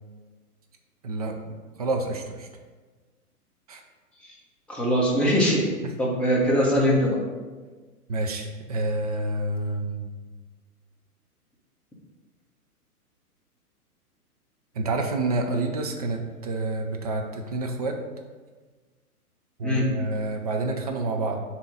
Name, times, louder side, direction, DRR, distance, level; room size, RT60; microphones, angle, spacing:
voice 1, 1.0-2.5 3.7-3.8 5.8-5.9 8.1-10.1 14.7-18.0 19.6-21.4, right 2 dB, 25° right, 3 dB, 0.4 m, -28 dB
voice 2, 4.7-5.7 6.0-7.2 19.6-19.8, equal, ahead, -5 dB, 0.9 m, -21 dB
7.0 x 3.0 x 5.4 m, 1.3 s
figure-of-eight pair, 120°, 46 cm